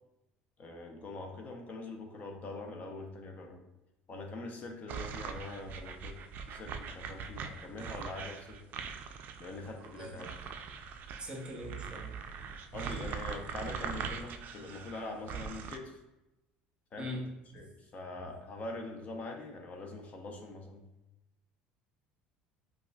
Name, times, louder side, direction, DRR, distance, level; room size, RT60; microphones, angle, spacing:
voice 1, 0.6-3.6 4.1-8.6 9.4-10.3 12.7-16.0 16.9-17.1 17.5-20.8, left 2 dB, 40° left, 2 dB, 0.6 m, -43 dB
sound 1, 4.9-15.8, right 6 dB, 55° right, 0.3 m, -42 dB
voice 2, 11.2-12.1 17.0-17.6, left 1 dB, 25° right, 1 dB, 0.8 m, -41 dB
5.1 x 2.4 x 2.2 m, 0.97 s
supercardioid pair, 100°, 4 cm